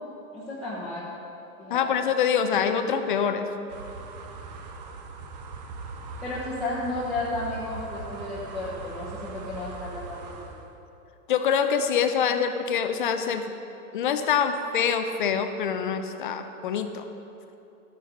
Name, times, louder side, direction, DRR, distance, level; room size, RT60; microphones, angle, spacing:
voice 1, 0.3-1.1 1.6-1.8 6.2-10.2 10.5-10.6, left 2 dB, ahead, -10 dB, 1.0 m, -33 dB
voice 2, 1.7-3.5 11.3-13.5 13.9-17.1, left 7 dB, 35° left, 8 dB, 0.5 m, -25 dB
sound 1, 3.7-10.7, right 4 dB, 30° right, 0.6 m, -40 dB
13.0 x 9.3 x 3.9 m, 2.9 s
supercardioid pair, 165°, 44 cm